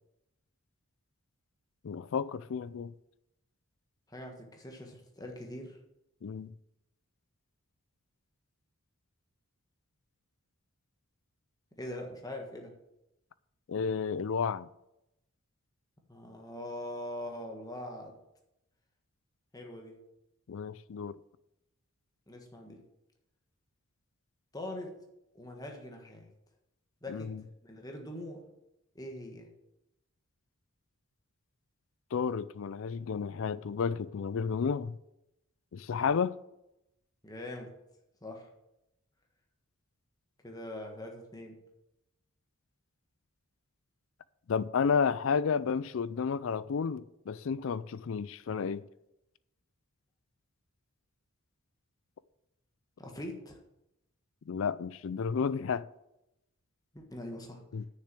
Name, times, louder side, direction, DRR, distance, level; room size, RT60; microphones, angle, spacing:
voice 1, 1.8-2.9 6.2-6.5 13.7-14.7 20.5-21.2 27.1-27.4 32.1-35.0 35.7-36.4 44.5-48.8 54.5-55.9 57.7-57.8, left 6 dB, 60° left, 0.4 m, -31 dB
voice 2, 4.1-5.8 11.8-12.8 16.1-18.1 19.5-20.0 22.3-22.8 24.5-25.0 25.3-26.3 27.0-27.3 27.6-28.4 28.9-29.5 37.2-37.7 38.2-38.5 40.4-41.6 53.0-53.6 56.9-57.6, left 1 dB, 15° left, 1.4 m, -42 dB
6.8 x 6.6 x 7.6 m
head